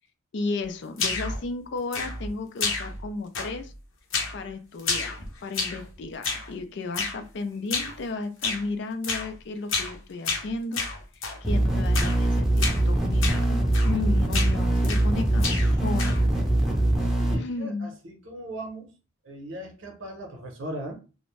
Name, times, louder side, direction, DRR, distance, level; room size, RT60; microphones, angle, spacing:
voice 1, 0.3-3.7 4.3-10.8 11.1-16.2 17.3-17.9, left 3 dB, 60° left, 0.4 m, -34 dB
sound 1, 1.0-1.4 1.9-2.3 2.6-3.1 3.3-3.7 4.1-4.4 4.8-5.9 6.2-6.5 6.9-7.2 7.7-8.0 8.4-8.6 9.0-9.3 9.7-10.0 10.2-11.4 11.9-12.2 12.6-12.8 13.2-13.4 13.7-14.0 14.3-15.1 15.4-16.3, left 4 dB, 80° left, 0.8 m, -30 dB
sound 2, 11.4-17.3, right 1 dB, ahead, 0.6 m, -23 dB
voice 2, 17.0-18.9 19.2-21.0, right 1 dB, 70° right, 0.8 m, -38 dB
2.5 x 2.1 x 3.1 m
head